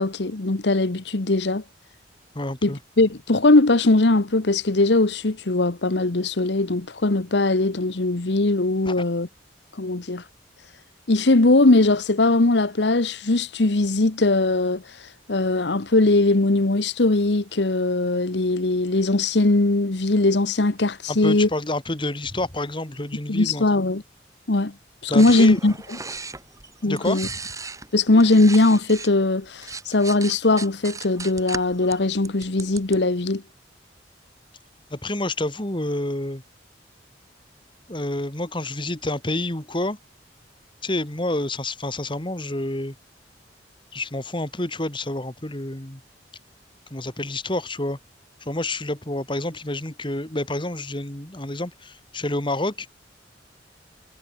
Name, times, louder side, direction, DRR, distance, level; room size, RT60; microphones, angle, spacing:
voice 1, 0.0-1.6 2.6-9.3 9.8-10.2 11.1-14.8 15.3-21.5 23.3-24.0 24.5-24.7 25.0-25.7 26.8-27.3 27.9-33.4, left 2 dB, 70° left, 1.2 m, -20 dB
voice 2, 2.3-2.8 8.9-9.0 21.1-23.7 25.1-25.6 26.9-27.3 34.9-36.4 37.9-40.0 40.8-42.9 43.9-46.0 46.9-48.0 48.4-52.9, left 1 dB, 25° left, 2.5 m, -28 dB
sound 1, 25.2-29.1 29.4-33.0, right 4 dB, 20° right, 4.8 m, -37 dB
head